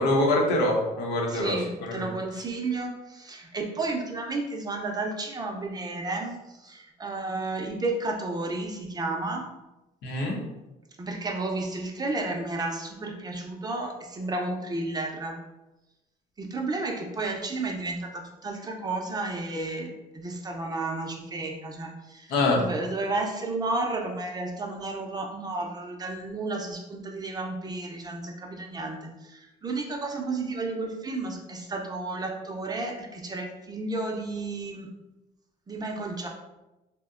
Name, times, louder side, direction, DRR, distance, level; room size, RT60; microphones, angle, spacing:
voice 1, 0.0-1.5 1.8-2.1 10.0-10.4 22.3-22.6, left 2 dB, 90° left, 0 dB, 0.8 m, -24 dB
voice 2, 1.3-6.3 6.6-9.4 11.0-15.4 16.4-22.3 22.6-29.0 29.2-34.9 35.7-36.3, right 2 dB, 25° right, 1 dB, 0.5 m, -32 dB
2.7 x 2.1 x 3.5 m, 1.0 s
cardioid pair, 110°, 17 cm